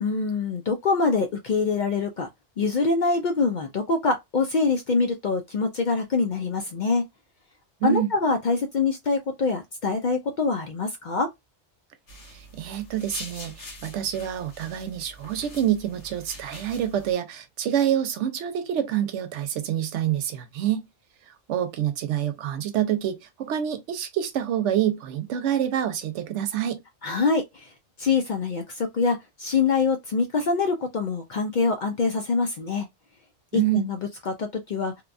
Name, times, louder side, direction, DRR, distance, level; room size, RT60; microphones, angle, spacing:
voice 1, 0.0-2.3 2.6-7.0 7.8-11.3 27.0-27.6 28.0-32.9 33.5-34.0 34.3-34.9, left 4 dB, 60° left, 0.5 m, -24 dB
sound 1, 12.1-17.1, left 1 dB, 80° left, 1.4 m, -43 dB
voice 2, 12.3-20.9 21.3-26.8 33.5-33.8, right 10 dB, 90° right, 0.9 m, -27 dB
2.8 x 2.2 x 2.4 m
omnidirectional pair, 1.2 m